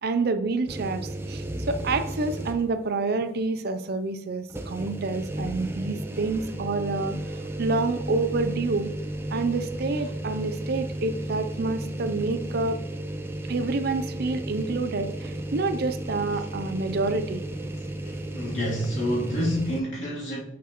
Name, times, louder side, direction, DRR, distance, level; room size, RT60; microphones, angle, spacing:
voice 1, 0.0-7.2 7.6-8.9 9.3-12.8 13.5-17.4, right 3 dB, 55° right, 0.5 m, -28 dB
sound 1, 0.7-2.8 3.2-3.3 4.5-19.8, right 1 dB, 10° right, 0.5 m, -34 dB
voice 2, 18.0-20.4, equal, 70° left, 2.9 m, -28 dB
8.3 x 6.0 x 3.0 m
head